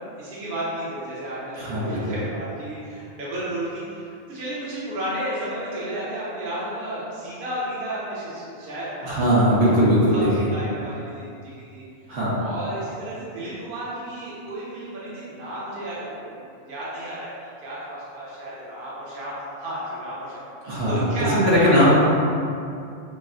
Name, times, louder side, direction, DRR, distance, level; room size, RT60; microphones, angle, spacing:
voice 1, 0.2-9.7 10.1-11.8 12.4-17.3 17.6-20.3 20.9-21.9, right 1 dB, 45° right, -9 dB, 1.0 m, -32 dB
voice 2, 1.6-2.1 9.0-10.5 12.1-12.4 20.6-21.0 21.5-21.9, equal, 70° right, -8 dB, 1.3 m, -19 dB
6.4 x 2.2 x 2.5 m, 2.5 s
omnidirectional pair, 1.3 m